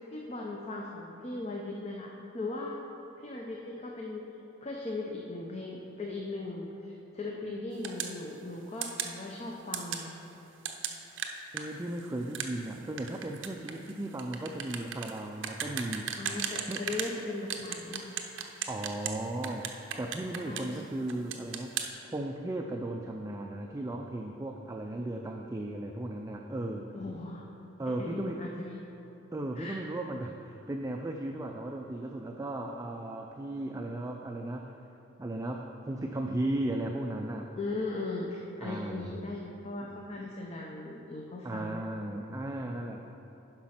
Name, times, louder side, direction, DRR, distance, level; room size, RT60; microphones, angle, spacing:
voice 1, 0.1-2.8 3.2-4.2 4.6-10.2 16.2-18.1 20.5-20.8 26.9-27.4 27.9-28.9 29.6-29.7 37.6-41.8, left 2 dB, 30° left, -1 dB, 0.6 m, -38 dB
sound 1, 7.8-8.2 8.8-9.2 9.7-10.1 10.6-17.1 17.5-19.2 19.4-20.8 21.1-21.9, right 8 dB, 65° right, 0.7 m, -36 dB
voice 2, 11.5-16.1 16.7-16.9 18.7-21.8 22.1-27.0 27.8-28.4 29.3-34.8 35.2-37.5 38.6-39.3 41.4-43.0, right 1 dB, 15° right, 2 dB, 0.4 m, -36 dB
10.5 x 5.2 x 5.8 m, 3.0 s
head